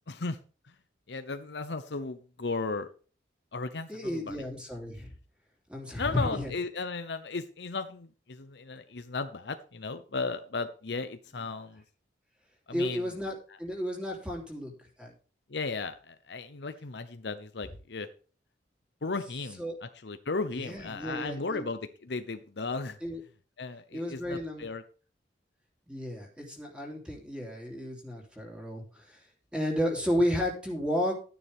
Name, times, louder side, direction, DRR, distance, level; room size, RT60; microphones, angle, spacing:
voice 1, 0.1-0.4 1.1-2.9 3.5-4.4 5.9-11.8 12.7-13.0 15.5-18.1 19.0-23.0 23.6-24.8, left 3 dB, 75° left, 10 dB, 0.8 m, -35 dB
voice 2, 3.9-5.1 5.7-6.5 12.7-14.7 15.0-15.1 19.6-19.8 20.6-21.7 23.0-23.2 23.9-24.7 25.9-29.2 29.5-31.2, equal, 5° right, -1 dB, 3.3 m, -32 dB
12.5 x 9.6 x 3.6 m, 0.37 s
head